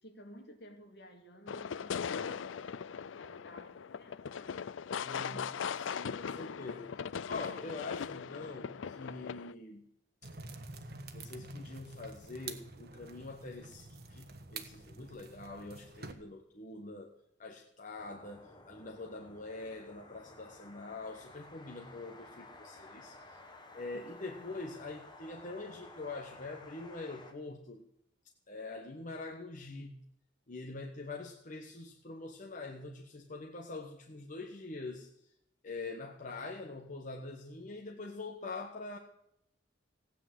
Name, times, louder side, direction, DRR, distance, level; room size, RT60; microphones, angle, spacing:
voice 1, 0.0-4.5 5.2-5.8 23.9-24.0 24.3-24.5, equal, 60° left, 4 dB, 2.4 m, -54 dB
sound 1, 1.5-9.5, left 7 dB, 75° left, 0.5 m, -39 dB
voice 2, 5.0-9.8 11.1-17.1 17.4-23.4 23.7-27.8 28.5-30.0 30.5-35.3 35.6-39.0, left 3 dB, 45° left, 2 dB, 1.4 m, -44 dB
sound 2, 10.2-16.1, right 3 dB, 55° right, 1.5 m, -48 dB
sound 3, 18.0-27.3, left 2 dB, 25° left, 1.8 m, -54 dB
16.5 x 9.2 x 7.6 m, 0.77 s
head